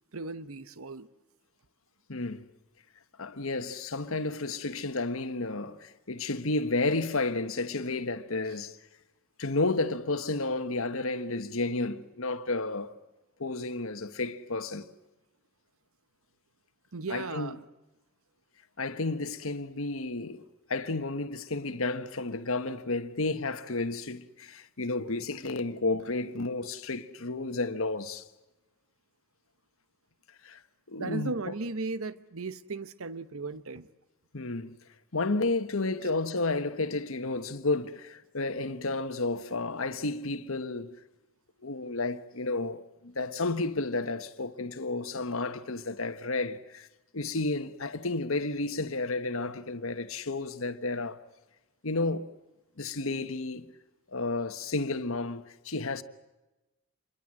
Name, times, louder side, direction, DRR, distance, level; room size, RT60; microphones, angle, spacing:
voice 1, 0.1-1.1 16.9-17.6 31.0-33.9, right 3 dB, 75° right, 1.0 m, -36 dB
voice 2, 2.1-2.5 3.2-8.8 9.4-12.9 13.4-14.9 17.1-17.6 18.8-20.4 20.7-28.2 30.4-30.6 30.9-31.5 34.3-34.8 35.1-41.0 41.6-46.9 47.1-51.2 51.8-52.3 52.8-53.7 54.1-56.0, left 3 dB, 70° left, 1.4 m, -32 dB
27.5 x 23.0 x 7.7 m
head